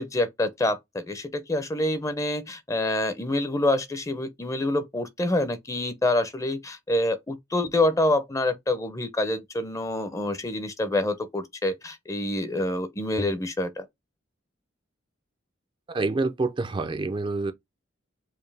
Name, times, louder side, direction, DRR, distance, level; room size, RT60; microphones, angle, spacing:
voice 1, 0.0-13.8, left 1 dB, 15° left, 0.6 m, -27 dB
voice 2, 15.9-17.5, right 3 dB, 25° right, 0.4 m, -27 dB
4.7 x 2.7 x 3.3 m
head